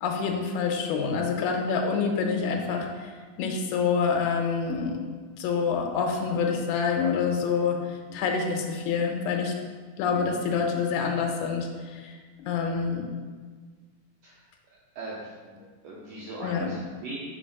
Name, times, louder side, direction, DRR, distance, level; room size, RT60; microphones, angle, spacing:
voice 1, 0.0-3.1 3.4-5.0 5.4-9.5 10.0-12.2 12.5-13.1 16.4-16.7, left 5 dB, 80° left, 2 dB, 2.1 m, -27 dB
voice 2, 14.9-17.3, right 2 dB, 75° right, -6 dB, 1.6 m, -40 dB
4.6 x 3.9 x 5.2 m, 1.5 s
omnidirectional pair, 3.6 m